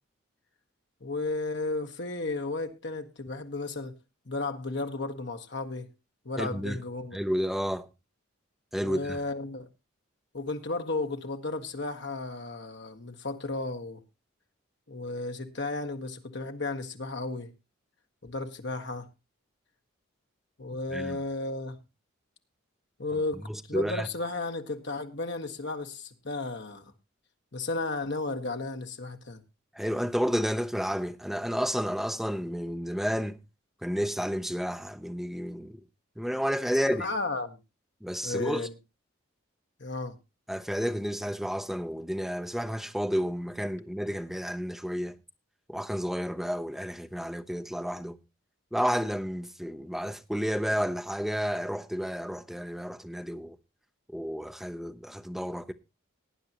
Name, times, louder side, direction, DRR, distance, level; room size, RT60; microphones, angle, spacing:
voice 1, 1.0-3.9 4.2-5.9 6.2-7.2 8.8-9.7 10.3-14.0 14.9-17.5 18.2-19.1 20.6-21.8 23.0-26.8 27.5-29.4 36.9-37.6 38.2-38.7 39.8-40.2, left 2 dB, 55° left, 1.4 m, -34 dB
voice 2, 6.4-6.8 7.1-7.9 8.7-9.2 20.9-21.2 23.5-24.1 29.7-33.4 33.8-35.8 36.2-37.1 38.0-38.7 40.5-45.2 45.7-48.2 48.7-53.6 54.1-55.7, equal, ahead, 0.6 m, -31 dB
18.5 x 9.6 x 2.9 m
head